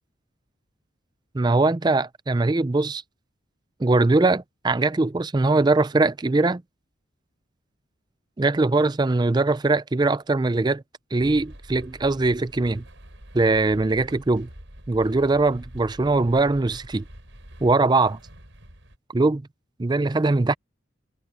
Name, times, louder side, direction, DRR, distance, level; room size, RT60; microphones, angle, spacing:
voice 1, 1.3-3.0 3.8-6.6 8.4-10.8 11.1-12.8 13.3-14.5 14.9-17.0 17.6-18.2 19.1-19.4 19.8-20.5, right 3 dB, 20° right, 0.4 m, -21 dB
sound 1, 11.2-19.0, equal, 65° right, 6.0 m, -45 dB
head